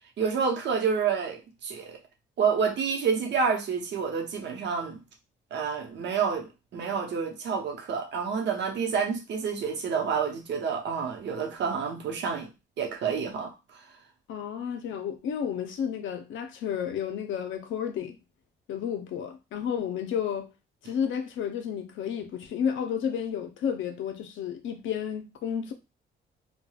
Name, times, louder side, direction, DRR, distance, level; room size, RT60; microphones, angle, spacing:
voice 1, 0.2-2.0 2.4-5.0 5.5-12.5 12.8-13.9, right 6 dB, 60° right, 0.8 m, -29 dB
voice 2, 14.3-18.1 18.7-20.5 20.8-25.7, left 8 dB, 75° left, 0.6 m, -31 dB
3.2 x 2.2 x 2.3 m
cardioid pair, 90°, 20 cm